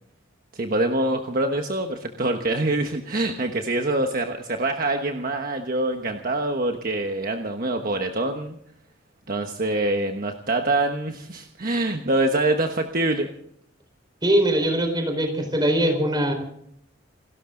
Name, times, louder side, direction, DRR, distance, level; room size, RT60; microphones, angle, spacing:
voice 1, 0.5-8.6 9.3-13.3, right 2 dB, 50° right, 4 dB, 1.3 m, -25 dB
voice 2, 14.2-16.3, right 1 dB, 25° right, 5 dB, 4.5 m, -21 dB
28.5 x 13.0 x 3.9 m, 0.70 s
head